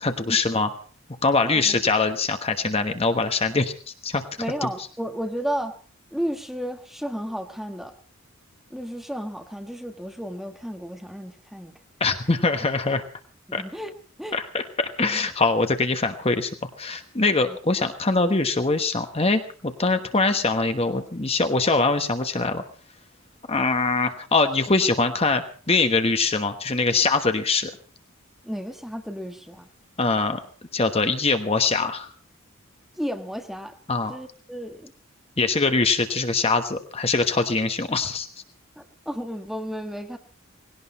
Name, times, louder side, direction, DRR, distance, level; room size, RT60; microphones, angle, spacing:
voice 1, 0.0-0.7 1.2-3.7 4.0-4.2 4.6-4.7 12.0-13.1 13.5-13.6 14.3-16.5 16.8-22.6 23.5-27.7 30.0-30.4 30.7-32.1 33.9-34.2 35.4-38.3, left 3 dB, 30° left, 7 dB, 1.2 m, -23 dB
voice 2, 1.4-1.8 4.4-5.7 6.1-7.9 8.7-11.7 13.5-13.9 14.2-14.4 17.4-17.6 28.4-29.7 32.9-33.7 34.1-34.9 38.8-40.2, equal, ahead, 5 dB, 1.4 m, -33 dB
19.0 x 17.0 x 4.2 m, 0.41 s
head